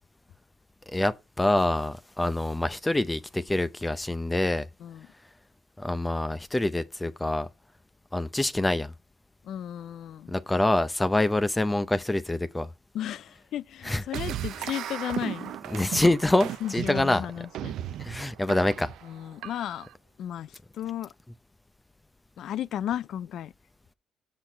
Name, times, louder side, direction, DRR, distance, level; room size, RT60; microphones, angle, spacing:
voice 1, 0.9-4.7 5.8-7.5 8.1-8.9 10.3-12.7 13.8-14.0 15.7-17.3 18.0-18.9, left 1 dB, 15° left, 0.6 m, -26 dB
voice 2, 9.5-10.3 12.9-15.5 16.6-17.7 19.0-19.9 20.2-21.1 22.4-23.5, left 11 dB, 75° left, 0.3 m, -34 dB
sound 1, 14.1-19.9, right 11 dB, 80° right, 0.5 m, -36 dB
6.3 x 6.0 x 4.5 m
cardioid pair, 90°, 0 cm